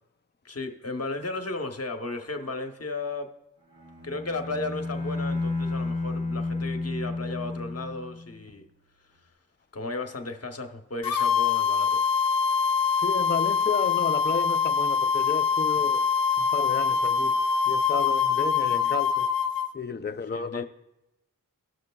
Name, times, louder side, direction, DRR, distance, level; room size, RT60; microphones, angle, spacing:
voice 1, 0.4-3.4 4.0-8.6 9.7-12.0 20.3-20.6, left 2 dB, 45° left, 0.9 m, -34 dB
Bowed string instrument, 3.7-8.5, left 3 dB, 65° right, 2.0 m, -32 dB
sound 1, 11.0-19.7, left 6 dB, 90° left, 0.5 m, -24 dB
voice 2, 13.0-16.0 16.4-17.4 17.7-19.3 19.7-20.6, left 5 dB, 30° left, 0.4 m, -32 dB
17.5 x 6.4 x 2.2 m
wide cardioid pair, 45°, 34 cm